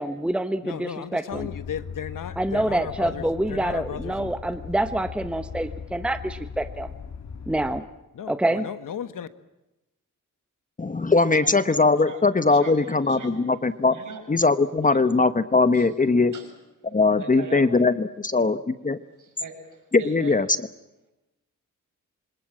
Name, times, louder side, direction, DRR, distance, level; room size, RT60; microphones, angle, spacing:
voice 1, 0.0-1.5 2.4-6.9 7.5-7.8 8.3-8.7, right 1 dB, 5° right, 1.0 m, -26 dB
voice 2, 0.6-4.3 8.1-9.3, left 8 dB, 75° left, 1.5 m, -35 dB
sound 1, 1.3-7.8, left 6 dB, 60° left, 2.3 m, -39 dB
voice 3, 10.8-14.0 14.3-16.3 16.9-19.0 19.9-20.5, left 3 dB, 25° left, 0.9 m, -20 dB
voice 4, 11.4-11.8 12.0-12.2 12.5-13.3 13.9-14.2 14.9-15.0 15.7-15.9 16.1-16.5 17.2-17.8 19.2-20.4, right 4 dB, 70° right, 7.0 m, -41 dB
27.0 x 25.5 x 7.5 m
wide cardioid pair, 135°, 32 cm